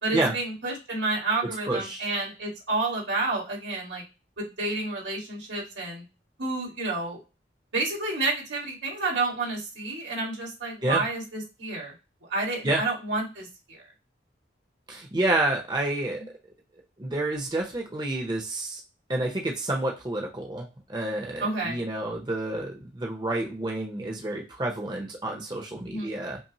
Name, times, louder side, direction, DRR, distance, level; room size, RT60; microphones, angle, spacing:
voice 1, 0.0-4.0 4.4-6.0 6.4-7.2 7.7-11.9 12.3-13.8 21.4-21.9 25.9-26.1, right 3 dB, 85° right, -2 dB, 2.0 m, -30 dB
voice 2, 1.7-2.1 10.8-11.0 12.6-12.8 14.9-16.2 17.0-18.8 19.1-26.4, right 2 dB, 25° right, 0 dB, 0.7 m, -29 dB
5.4 x 2.1 x 2.9 m, 0.28 s
head